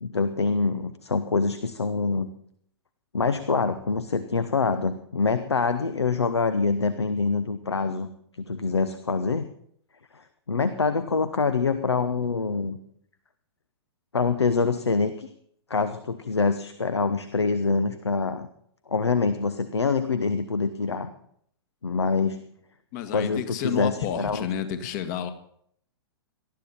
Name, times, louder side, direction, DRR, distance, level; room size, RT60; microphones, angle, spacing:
voice 1, 0.0-2.3 3.1-8.1 8.4-9.5 10.1-12.8 14.1-15.3 15.7-18.5 18.9-21.1 21.8-22.4 23.1-24.5, left 4 dB, 80° left, 11 dB, 1.0 m, -25 dB
voice 2, 22.9-25.3, left 9 dB, 40° left, 9 dB, 1.7 m, -30 dB
19.0 x 12.5 x 4.3 m, 0.67 s
figure-of-eight pair, 105°, 14 cm